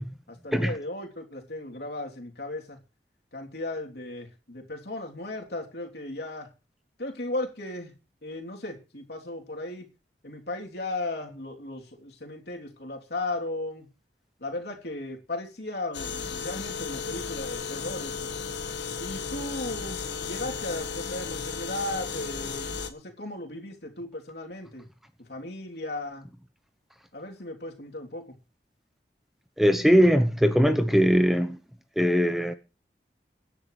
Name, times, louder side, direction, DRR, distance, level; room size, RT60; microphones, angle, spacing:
voice 1, 0.3-2.8 3.3-6.5 7.0-7.9 8.2-9.9 10.2-13.9 14.4-18.3 19.0-24.9 25.2-26.3 27.1-28.3, left 2 dB, 70° left, 3.3 m, -36 dB
sound 1, 15.9-22.9, left 5 dB, 90° left, 1.6 m, -34 dB
voice 2, 29.6-31.6 32.0-32.6, equal, ahead, 0.8 m, -20 dB
24.5 x 10.5 x 3.3 m
head